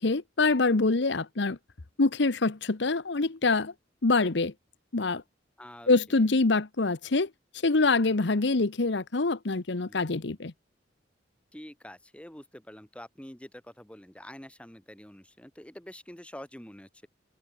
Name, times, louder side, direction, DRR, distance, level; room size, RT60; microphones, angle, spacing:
voice 1, 0.0-1.6 2.0-3.7 4.0-4.5 4.9-5.2 5.9-7.3 7.6-10.5, left 3 dB, 70° left, 1.0 m, -25 dB
voice 2, 5.6-5.9 9.9-10.4 11.5-17.1, left 1 dB, 5° left, 2.0 m, -46 dB
open air
head